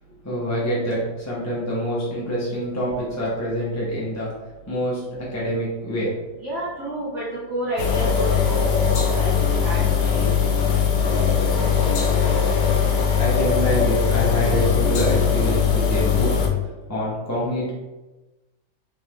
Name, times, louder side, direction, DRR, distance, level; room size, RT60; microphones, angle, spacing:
voice 1, 0.2-4.3 4.7-6.1 13.2-16.3 16.9-17.7, equal, 20° left, -6 dB, 0.5 m, -26 dB
voice 2, 6.4-7.2 7.5-10.4, right 1 dB, 50° right, -8 dB, 1.2 m, -30 dB
sound 1, 7.8-16.5, left 6 dB, 80° left, 1.3 m, -20 dB
3.7 x 3.3 x 3.1 m, 1.1 s
omnidirectional pair, 1.8 m